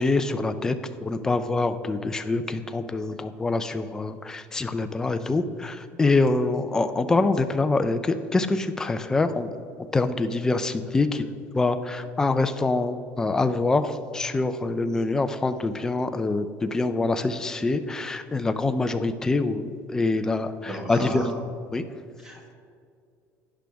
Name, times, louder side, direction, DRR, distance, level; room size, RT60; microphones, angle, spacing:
voice 1, 0.0-9.5 9.9-11.3 11.5-21.2 21.7-21.8, left 3 dB, 10° left, 9 dB, 0.4 m, -25 dB
voice 2, 20.7-21.4 22.2-22.5, equal, 10° right, 1 dB, 1.3 m, -33 dB
11.0 x 10.5 x 3.5 m, 2.3 s
cardioid pair, 175°, 6 cm